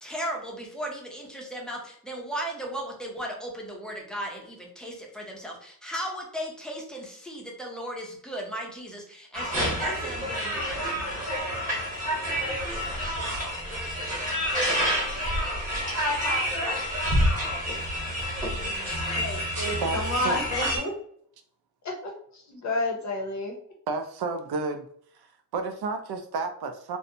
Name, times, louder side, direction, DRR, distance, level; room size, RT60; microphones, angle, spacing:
voice 1, 0.0-11.0, equal, ahead, 0 dB, 0.4 m, -36 dB
sound 1, 9.3-20.8, equal, 20° right, 1.0 m, -28 dB
voice 2, 19.0-20.9 21.8-22.1 22.5-23.5, left 2 dB, 50° left, 1 dB, 0.7 m, -30 dB
voice 3, 19.8-20.4 23.9-24.9 25.2-27.0, right 3 dB, 80° right, 7 dB, 0.5 m, -31 dB
2.6 x 2.0 x 2.6 m, 0.63 s
wide cardioid pair, 170°, 38 cm